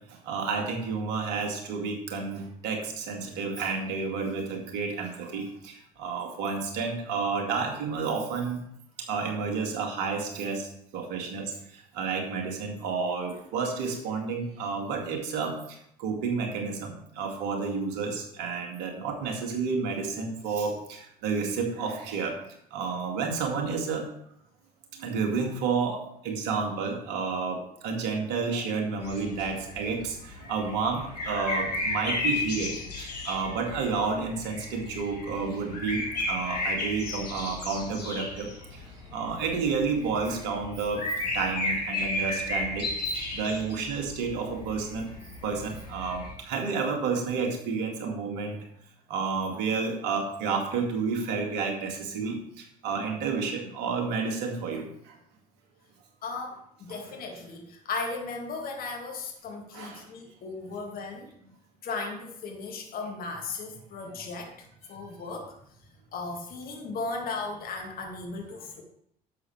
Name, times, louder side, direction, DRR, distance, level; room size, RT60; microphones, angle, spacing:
voice 1, 0.2-5.7 6.0-8.6 9.1-11.5 11.9-15.6 16.0-22.4 22.7-24.1 25.0-38.8 39.1-41.0 41.3-42.9 43.3-45.1 45.4-48.6 49.1-52.4 52.8-54.9 56.9-57.2 59.7-60.0 68.5-68.6, right 5 dB, 60° right, 2 dB, 2.1 m, -30 dB
sound 1, 29.0-46.3, left 2 dB, 80° left, 2.0 m, -34 dB
voice 2, 56.2-61.3 61.8-65.5 66.1-68.8, left 3 dB, 45° left, 1 dB, 2.1 m, -36 dB
11.0 x 7.3 x 3.3 m, 0.71 s
figure-of-eight pair, 55°, 21 cm